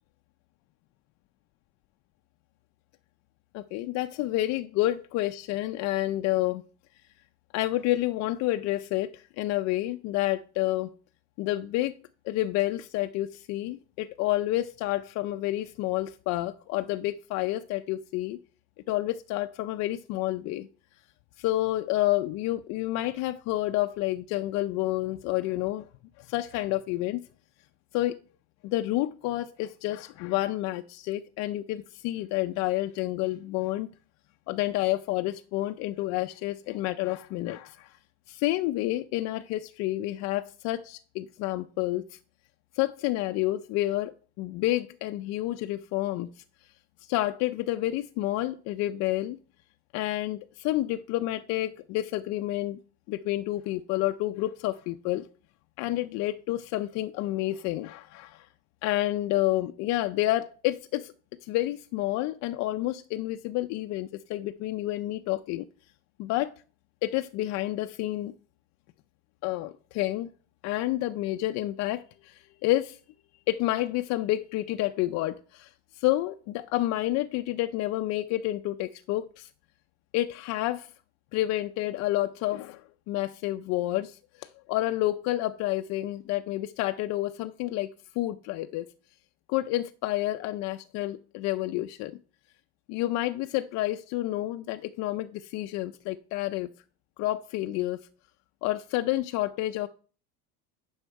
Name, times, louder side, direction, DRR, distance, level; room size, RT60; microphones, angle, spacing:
voice 1, 3.5-6.6 7.5-10.9 11.4-12.0 12.3-18.4 18.9-20.7 21.4-25.9 26.2-27.2 27.9-28.2 28.6-33.9 34.5-38.0 38.3-42.2 42.7-46.4 47.0-49.4 49.9-52.8 53.1-55.3 55.8-58.5 58.8-61.1 61.4-65.7 66.2-66.5 67.0-68.3 69.4-70.3 70.6-73.0 73.5-79.5 80.1-80.9 81.3-88.9 89.5-92.2 92.9-96.7 97.2-98.0 98.6-99.9, left 16 dB, 55° left, 0.5 m, -29 dB
9.8 x 6.3 x 4.6 m
cardioid pair, 150°, 31 cm